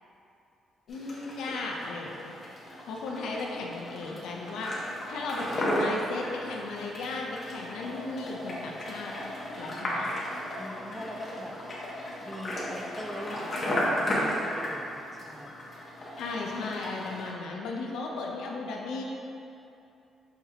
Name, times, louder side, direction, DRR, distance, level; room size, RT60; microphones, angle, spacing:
voice 1, 0.9-2.4 2.9-4.7 5.1-9.3 9.6-10.1 16.2-19.0, left 3 dB, 80° left, 0 dB, 0.4 m, -36 dB
sound 1, 0.9-17.3, equal, 40° left, 0.9 m, -34 dB
voice 2, 10.6-11.6 12.2-15.6, equal, 5° right, 0 dB, 0.4 m, -42 dB
5.7 x 2.4 x 2.8 m, 2.8 s
cardioid pair, 90°, 0 cm